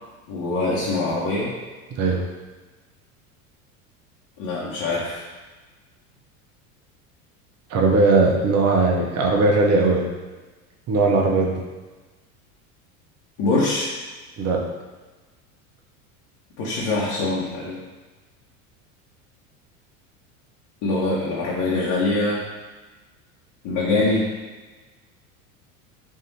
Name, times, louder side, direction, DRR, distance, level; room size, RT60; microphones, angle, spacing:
voice 1, 0.3-1.5 4.4-5.2 13.4-13.9 16.6-17.8 20.8-22.4 23.6-24.3, left 2 dB, 55° left, -6 dB, 1.2 m, -23 dB
voice 2, 7.7-10.1 10.9-11.6 14.4-14.6, right 3 dB, 35° right, -1 dB, 0.8 m, -19 dB
3.6 x 2.7 x 4.1 m, 1.3 s
hypercardioid pair, 95°, 42 cm